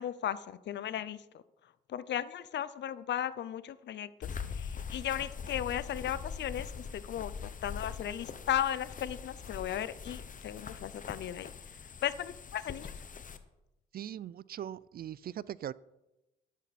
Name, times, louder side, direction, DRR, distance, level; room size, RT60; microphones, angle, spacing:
voice 1, 0.0-1.4 1.9-11.5 12.0-12.9, left 10 dB, 60° left, 0.7 m, -36 dB
sound 1, 4.2-13.4, left 6 dB, 40° left, 1.1 m, -43 dB
voice 2, 13.9-15.7, right 10 dB, 50° right, 0.4 m, -40 dB
12.0 x 11.5 x 4.2 m
cardioid pair, 90°, 20 cm